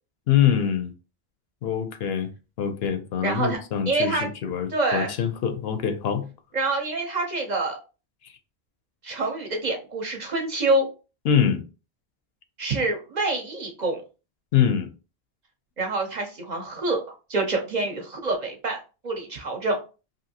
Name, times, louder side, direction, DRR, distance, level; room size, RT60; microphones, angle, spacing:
voice 1, 0.3-0.9 1.6-2.3 2.6-6.2 11.2-11.6 14.5-14.9, left 8 dB, 75° left, 0.8 m, -24 dB
voice 2, 3.2-3.6 3.9-4.3 4.7-5.1 6.5-7.8 9.0-10.9 12.6-14.0 15.8-18.8 19.0-19.8, right 2 dB, 50° right, 0.7 m, -26 dB
2.8 x 2.6 x 2.7 m
omnidirectional pair, 1.1 m